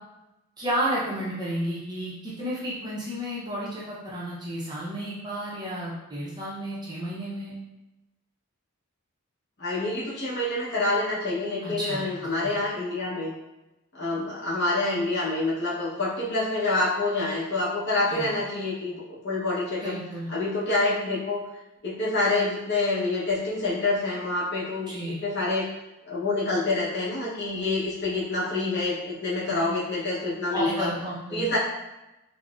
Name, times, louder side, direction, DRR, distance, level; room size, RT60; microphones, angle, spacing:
voice 1, 0.6-7.5 11.6-12.0 12.4-12.5 18.1-18.3 19.8-20.3 24.9-25.2 29.4-29.6 30.5-31.6, equal, 20° right, -7 dB, 0.5 m, -32 dB
voice 2, 9.6-13.3 13.9-19.9 20.3-21.4 21.8-25.7 26.0-30.9 31.3-31.6, left 2 dB, 50° left, -7 dB, 0.8 m, -27 dB
3.6 x 2.0 x 2.4 m, 0.98 s
head